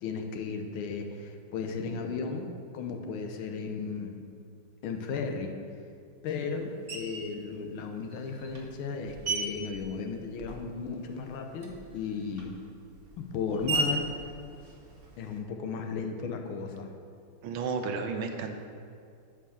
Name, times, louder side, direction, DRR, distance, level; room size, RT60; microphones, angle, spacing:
voice 1, 0.0-4.2 4.8-5.6 6.2-12.5 13.2-14.2 15.2-16.9, left 5 dB, 80° left, 5 dB, 1.6 m, -35 dB
Screech, 6.9-7.4 8.1-10.8 11.1-15.4, right 3 dB, 40° right, 0.8 m, -37 dB
voice 2, 17.4-18.5, right 5 dB, 75° right, 6 dB, 1.5 m, -32 dB
8.3 x 4.9 x 7.0 m, 2.4 s
omnidirectional pair, 2.3 m